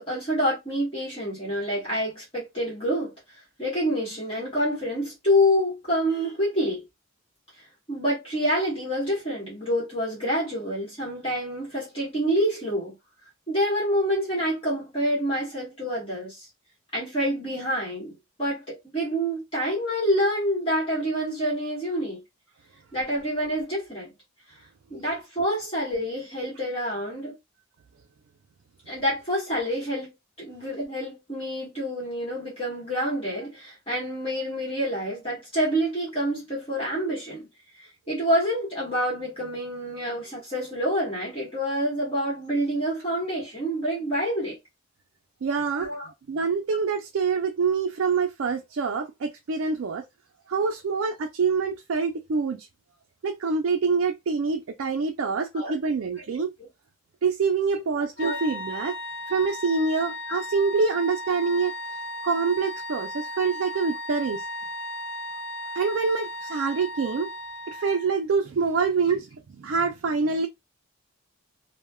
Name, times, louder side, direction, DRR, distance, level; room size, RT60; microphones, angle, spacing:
voice 1, 0.0-3.1 3.6-6.8 7.9-12.9 13.5-16.5 16.9-22.2 22.9-24.1 24.9-27.3 28.9-37.5 37.8-44.6 45.8-46.1 55.5-55.7 56.2-56.3 57.9-58.4 60.3-60.4, equal, 25° left, 1.2 m, -27 dB
voice 2, 45.4-45.9 46.3-50.0 50.5-52.7 53.2-56.5 57.2-59.0 59.3-61.7 62.2-64.4 65.8-67.3 67.7-69.3 69.6-70.5, right 5 dB, 60° right, 0.4 m, -25 dB
sound 1, 58.2-68.2, left 1 dB, 50° left, 0.6 m, -36 dB
3.2 x 2.1 x 2.2 m
head